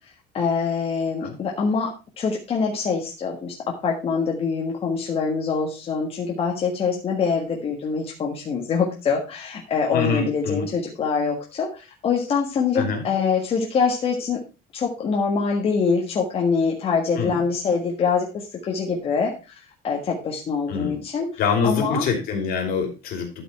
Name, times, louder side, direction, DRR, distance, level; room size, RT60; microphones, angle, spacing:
voice 1, 0.3-14.4 14.7-19.3 19.8-21.3 21.6-22.0, left 5 dB, 30° left, -1 dB, 1.5 m, -24 dB
voice 2, 9.9-10.7 12.7-13.1 17.2-17.4 20.7-21.0 21.4-23.4, left 5 dB, 55° left, 4 dB, 3.0 m, -25 dB
12.5 x 5.5 x 4.4 m, 0.30 s
cardioid pair, 175°, 19 cm